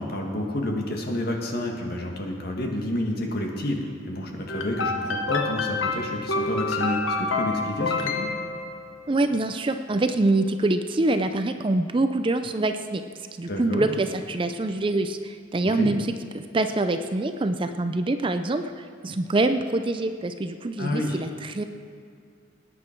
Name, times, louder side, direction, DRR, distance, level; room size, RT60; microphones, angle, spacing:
voice 1, 0.0-8.3 13.5-13.9 15.8-15.9 20.8-21.2, left 1 dB, 50° left, 1 dB, 1.7 m, -29 dB
sound 1, 4.5-9.1, left 3 dB, 75° left, 1.1 m, -28 dB
voice 2, 9.1-13.0 13.4-21.6, right 2 dB, 25° right, 8 dB, 0.4 m, -25 dB
19.5 x 9.7 x 4.5 m, 2.4 s
head